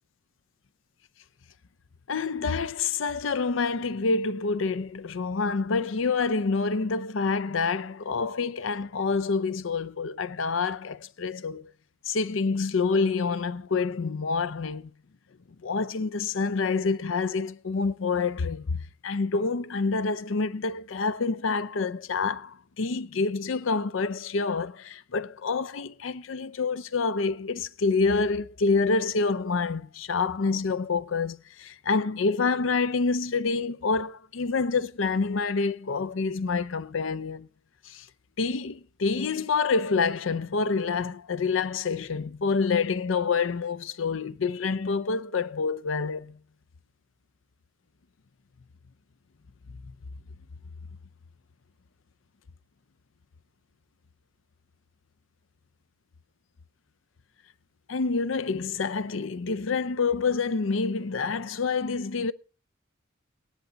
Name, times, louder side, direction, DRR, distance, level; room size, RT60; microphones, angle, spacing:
voice 1, 2.1-11.7 12.1-14.9 15.6-37.5 37.8-38.1 38.4-46.4 57.9-62.3, left 4 dB, 85° left, 0.6 m, -27 dB
18.0 x 10.5 x 4.0 m
head